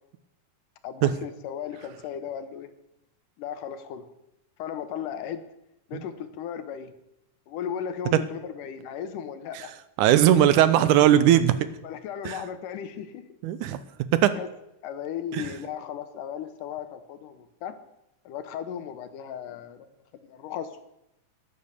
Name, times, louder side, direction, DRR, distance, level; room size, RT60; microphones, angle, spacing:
voice 1, 0.8-2.7 3.4-4.1 4.6-5.4 5.9-6.9 7.5-9.7 11.8-13.3 14.3-14.5 14.8-17.8 18.3-19.9 20.3-20.8, left 8 dB, 85° left, 10 dB, 2.5 m, -36 dB
voice 2, 10.0-11.5 12.3-12.4 13.4-13.8 14.1-14.3 15.3-15.5, right 11 dB, 80° right, 13 dB, 2.1 m, -19 dB
11.0 x 10.5 x 6.7 m, 0.86 s
omnidirectional pair, 3.7 m